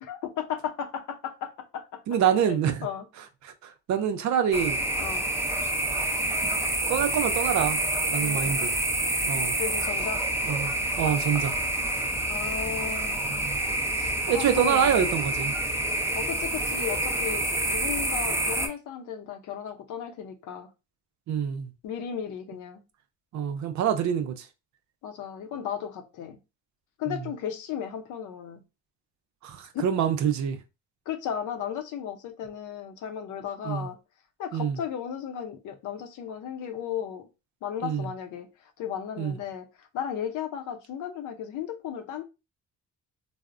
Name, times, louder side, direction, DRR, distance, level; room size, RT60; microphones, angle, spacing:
voice 1, 0.0-2.0 2.4-3.1 5.0-5.3 8.2-8.6 9.6-10.2 12.3-13.5 13.9-15.0 16.2-20.7 21.8-22.8 25.0-26.4 27.0-28.6 29.7-29.9 31.1-34.0 34.4-37.3 37.6-42.2, left 8 dB, 80° left, 0.6 m, -35 dB
voice 2, 2.1-2.9 3.4-4.8 6.9-7.8 8.1-8.7 9.3-9.5 10.5-11.6 13.4-13.6 14.3-15.5 21.3-21.7 23.3-24.5 27.1-27.2 29.4-30.6 33.6-33.9 34.5-34.8 37.8-38.1 39.2-39.3, right 8 dB, 65° right, 0.6 m, -26 dB
sound 1, 4.5-18.7, right 1 dB, 10° right, 0.5 m, -28 dB
3.3 x 2.0 x 2.4 m
cardioid pair, 90°, 30 cm